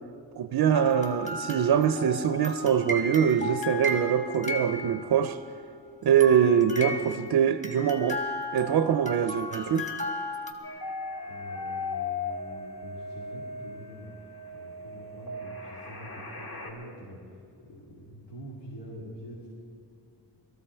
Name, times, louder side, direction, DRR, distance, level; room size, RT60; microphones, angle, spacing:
voice 1, 0.4-5.4 6.0-8.2 8.5-9.9, right 8 dB, 60° right, 0.5 m, -24 dB
sound 1, 0.7-5.5 6.2-10.5, left 1 dB, 15° left, 1.4 m, -35 dB
sound 2, 10.6-16.7, left 3 dB, 55° left, 2.3 m, -37 dB
voice 2, 11.3-19.5, equal, 85° left, 2.6 m, -45 dB
19.5 x 14.0 x 4.4 m
wide cardioid pair, 145°, 42 cm